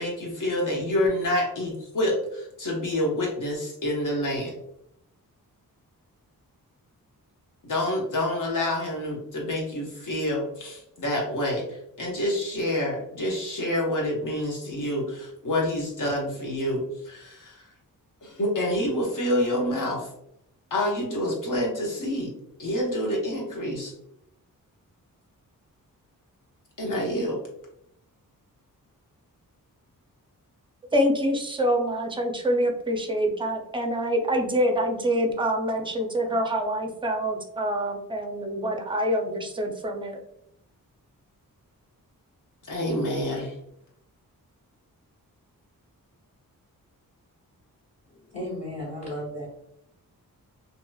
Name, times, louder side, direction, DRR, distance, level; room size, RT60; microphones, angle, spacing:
voice 1, 0.0-4.5 7.6-17.7 18.2-20.1 20.7-22.3 22.6-23.9 26.8-27.4 42.7-43.6, left 1 dB, 65° left, -1 dB, 1.0 m, -27 dB
voice 2, 30.9-40.2, equal, 15° right, 3 dB, 0.5 m, -26 dB
voice 3, 48.3-49.5, left 1 dB, 20° left, -10 dB, 1.2 m, -34 dB
2.8 x 2.8 x 2.3 m, 0.78 s
wide cardioid pair, 115°, 34 cm